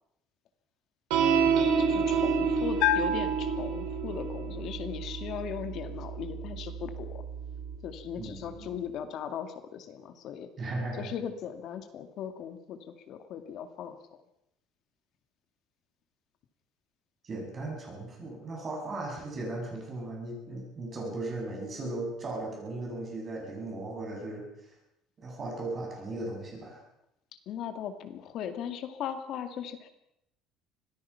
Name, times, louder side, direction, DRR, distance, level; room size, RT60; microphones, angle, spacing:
sound 1, 1.1-7.8, right 6 dB, 85° right, 5.9 m, -29 dB
voice 1, 1.8-7.2 7.8-10.5 10.9-14.0 27.3-29.9, left 8 dB, 45° left, 8 dB, 2.1 m, -38 dB
Bell, 2.8-4.4, left 7 dB, 70° left, 2.9 m, -30 dB
voice 2, 8.2-8.7 10.6-11.1 17.2-24.5 25.2-26.8, right 2 dB, 25° right, 0 dB, 7.4 m, -37 dB
25.5 x 18.5 x 5.8 m, 0.81 s
cardioid pair, 170°, 0 cm